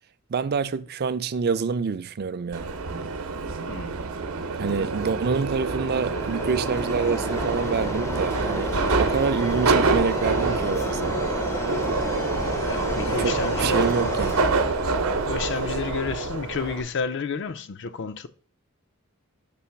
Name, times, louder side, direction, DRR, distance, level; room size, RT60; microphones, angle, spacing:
voice 1, 0.3-2.7 4.5-8.7 9.0-11.1 13.2-14.5, right 5 dB, 50° right, 0.4 m, -27 dB
Subway metro underground, 2.5-16.8, right 4 dB, 90° right, 0.7 m, -26 dB
voice 2, 3.7-4.0 12.7-14.1 14.9-15.0 15.3-18.3, left 5 dB, 55° left, 0.5 m, -31 dB
Mechanisms, 4.7-17.0, left 1 dB, 15° left, 0.5 m, -34 dB
sound 1, 8.7-14.4, left 2 dB, 85° left, 2.0 m, -42 dB
6.9 x 3.1 x 5.8 m
head